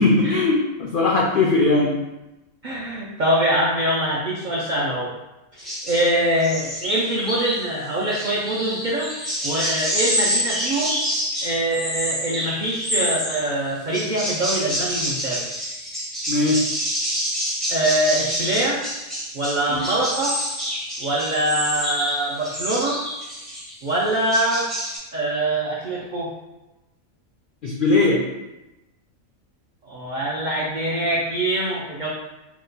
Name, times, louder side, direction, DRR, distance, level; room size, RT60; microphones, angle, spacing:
voice 1, 0.0-1.9 16.3-16.6 19.7-19.8 27.6-28.2, left 3 dB, 75° left, -3 dB, 0.4 m, -19 dB
voice 2, 2.6-5.1 5.5-9.1 9.4-11.0 11.4-15.4 17.7-18.8 19.3-20.4 21.0-23.0 23.8-24.7 25.1-26.3 29.9-32.1, right 1 dB, 80° right, -5 dB, 0.4 m, -24 dB
sound 1, 5.6-6.1 6.4-7.7 8.1-13.5 13.9-23.7 24.1-25.0, equal, ahead, 0.4 m, -27 dB
2.9 x 2.2 x 3.8 m, 1.0 s
omnidirectional pair, 1.4 m